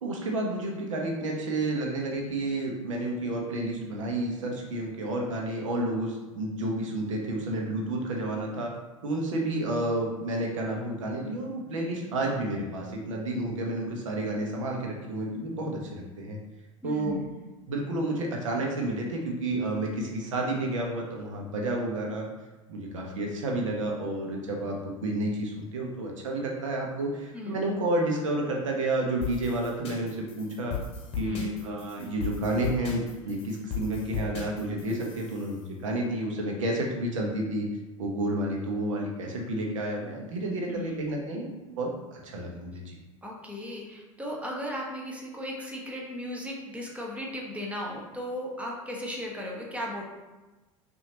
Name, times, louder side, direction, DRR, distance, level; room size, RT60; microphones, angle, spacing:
voice 1, 0.0-8.7 9.0-16.4 16.8-17.2 17.7-22.3 22.7-30.8 31.1-37.7 38.0-43.0, right 1 dB, 70° right, 0 dB, 1.0 m, -30 dB
voice 2, 16.8-17.3 27.3-27.6 31.2-31.5 40.7-40.9 43.2-50.0, left 1 dB, 10° right, -2 dB, 1.0 m, -36 dB
sound 1, 29.2-35.6, left 5 dB, 35° left, 1.1 m, -37 dB
5.7 x 2.7 x 2.9 m, 1.2 s
figure-of-eight pair, 80°, 17 cm